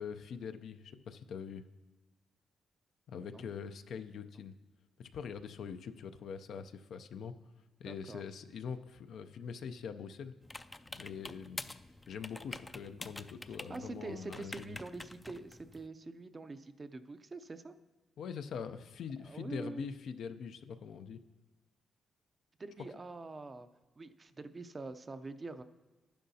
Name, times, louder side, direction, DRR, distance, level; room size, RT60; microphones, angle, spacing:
voice 1, 0.0-1.6 3.1-4.5 5.0-7.3 7.8-10.3 10.9-11.8 12.1-14.8 18.2-21.2, left 6 dB, 75° left, 9 dB, 0.5 m, -43 dB
voice 2, 7.9-8.2 13.7-17.7 19.2-19.9 22.6-23.7 24.0-25.6, right 3 dB, 35° right, 10 dB, 0.5 m, -45 dB
sound 1, 10.4-15.9, left 2 dB, 20° left, 0.4 m, -47 dB
11.0 x 10.0 x 2.8 m, 1.2 s
cardioid pair, 70°, 0 cm